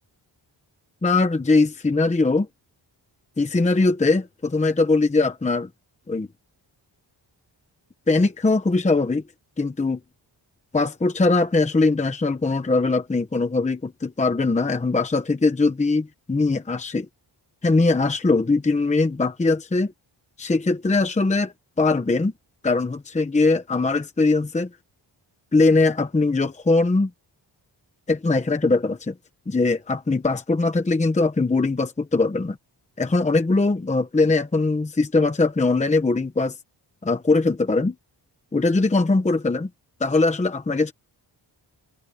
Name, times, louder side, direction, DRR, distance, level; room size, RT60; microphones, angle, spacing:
voice 1, 1.0-2.5 3.4-5.7 6.1-6.3 8.1-9.2 9.6-10.0 10.7-17.1 17.6-19.9 20.4-22.3 22.6-24.7 25.5-27.1 28.1-29.1 29.5-32.6 33.0-36.6 37.0-38.0 38.5-39.7 40.0-40.9, left 3 dB, 15° left, 1.0 m, -21 dB
wide cardioid pair, 165°, 44 cm